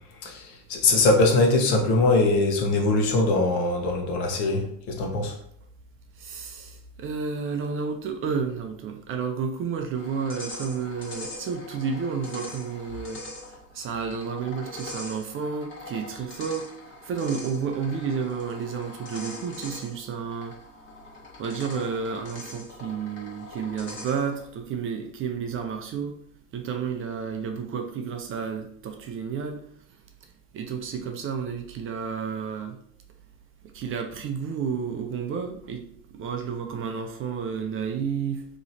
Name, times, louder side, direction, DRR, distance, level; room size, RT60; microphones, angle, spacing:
voice 1, 0.2-5.3, left 2 dB, 75° left, 2 dB, 1.2 m, -22 dB
voice 2, 6.2-13.2 13.7-20.5 21.4-26.1 26.5-29.6 30.5-32.8 33.7-35.8 36.2-38.5, right 6 dB, 35° right, 4 dB, 0.4 m, -31 dB
sound 1, 9.9-24.4, left 2 dB, 30° left, 1.3 m, -42 dB
3.1 x 2.9 x 4.0 m, 0.67 s
supercardioid pair, 125°, 41 cm